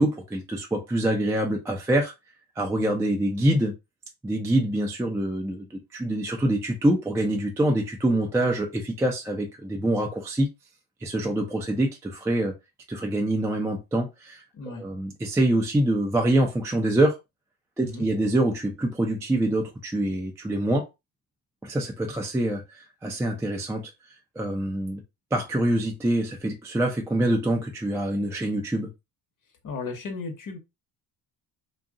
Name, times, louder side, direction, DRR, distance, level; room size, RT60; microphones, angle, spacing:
voice 1, 0.0-2.1 2.6-3.7 4.2-10.5 11.0-12.5 12.9-17.2 17.8-20.9 21.6-23.9 24.4-25.0 25.3-28.9, right 1 dB, 5° right, 0.4 m, -25 dB
voice 2, 14.5-14.8 17.8-18.1 29.6-30.6, left 3 dB, 40° left, 1.0 m, -35 dB
2.4 x 2.0 x 3.5 m
cardioid pair, 90°, 49 cm